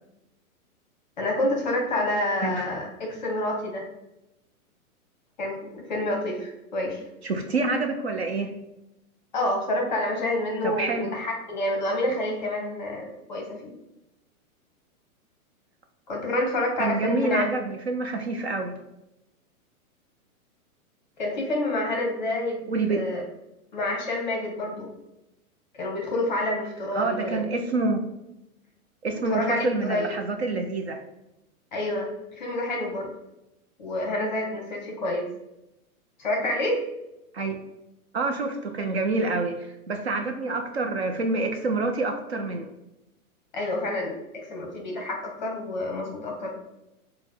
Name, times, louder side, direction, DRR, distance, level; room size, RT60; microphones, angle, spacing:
voice 1, 1.2-3.9 5.4-7.0 9.3-13.7 16.1-17.5 21.2-23.2 23.7-24.9 25.7-27.4 29.1-30.1 31.7-33.1 33.8-35.3 36.2-36.8 43.5-46.5, left 1 dB, 30° left, 1 dB, 0.7 m, -28 dB
voice 2, 7.2-8.5 10.6-11.1 16.8-18.8 22.7-23.0 26.9-28.0 29.0-31.0 37.3-37.6 38.1-42.7, right 3 dB, 50° right, 4 dB, 0.4 m, -27 dB
4.1 x 2.1 x 4.2 m, 0.89 s
hypercardioid pair, 170°, 44 cm